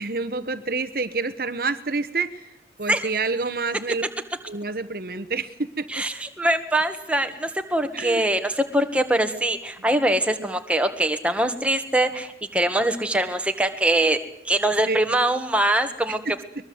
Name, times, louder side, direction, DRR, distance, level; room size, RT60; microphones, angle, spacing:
voice 1, 0.0-2.5 2.8-4.0 4.5-6.0 7.9-8.3 14.8-15.0 16.1-16.3, right 3 dB, 55° right, 11 dB, 1.1 m, -28 dB
voice 2, 5.9-14.2 14.4-16.2, right 1 dB, 5° right, 6 dB, 1.8 m, -23 dB
22.5 x 21.5 x 8.0 m, 0.82 s
head